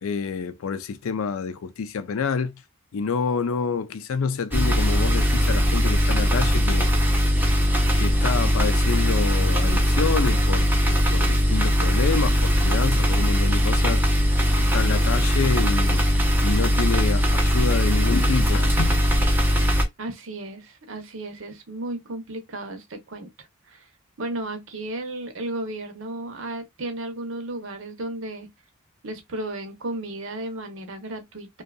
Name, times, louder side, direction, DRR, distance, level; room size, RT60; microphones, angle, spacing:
voice 1, 0.0-2.6 2.9-7.1 7.9-14.0 14.6-16.0 16.4-19.0, left 5 dB, 75° left, 0.4 m, -28 dB
sound 1, 4.5-19.8, equal, 10° right, 0.4 m, -20 dB
voice 2, 20.0-23.9 24.2-28.5 29.0-31.6, right 1 dB, 65° right, 0.7 m, -34 dB
2.6 x 2.3 x 2.3 m
head